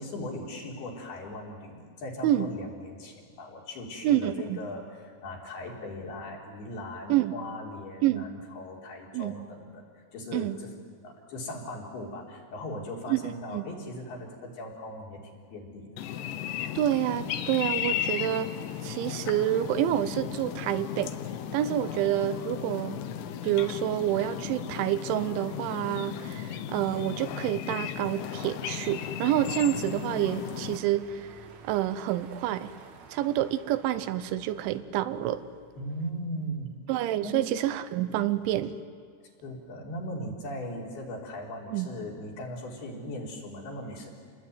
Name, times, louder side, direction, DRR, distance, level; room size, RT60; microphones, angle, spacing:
voice 1, 0.0-9.8 10.1-10.8 11.0-16.1 35.8-36.7 37.2-37.5 39.4-44.1, left 1 dB, 60° left, -1 dB, 5.5 m, -39 dB
voice 2, 4.0-4.6 7.1-7.3 8.0-8.2 9.1-9.3 10.3-10.6 13.1-13.6 16.8-18.5 18.8-21.1 21.5-23.0 23.4-31.1 31.6-32.7 33.1-35.4 36.9-38.7 41.7-41.9, right 12 dB, 90° right, 13 dB, 3.4 m, -28 dB
sound 1, 16.0-30.8, left 10 dB, 85° left, 3.6 m, -35 dB
sound 2, 28.7-34.8, right 6 dB, 60° right, 1.9 m, -51 dB
28.5 x 21.0 x 9.4 m, 2.1 s
omnidirectional pair, 5.3 m